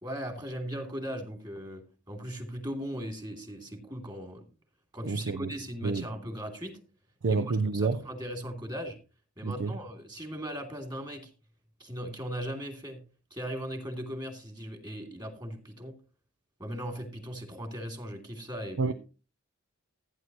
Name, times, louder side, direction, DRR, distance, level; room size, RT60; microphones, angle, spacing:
voice 1, 0.0-4.4 4.9-6.7 7.3-7.4 7.7-9.0 9.4-11.3 11.8-13.0 13.3-15.9 16.6-18.9, equal, 20° right, 2.7 m, -38 dB
voice 2, 5.0-5.5 5.8-6.1 7.2-8.0 9.4-9.8 18.8-18.9, right 4 dB, 60° right, 0.5 m, -28 dB
15.5 x 10.0 x 3.0 m
head